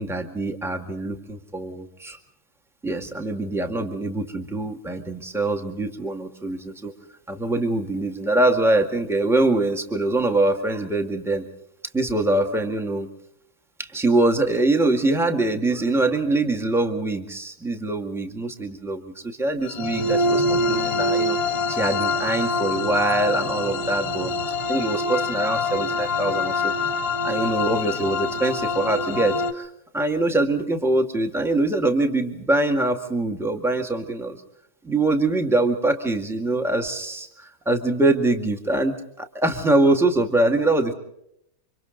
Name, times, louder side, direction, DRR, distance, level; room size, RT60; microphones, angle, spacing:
voice 1, 0.0-2.2 2.8-6.9 7.3-11.4 11.9-13.1 13.8-21.4 21.7-26.7 27.2-34.4 34.8-40.9, right 2 dB, ahead, 4 dB, 1.8 m, -23 dB
sound 1, 19.7-29.5, left 3 dB, 30° left, 1.6 m, -25 dB
29.5 x 25.5 x 4.0 m, 0.76 s
omnidirectional pair, 2.2 m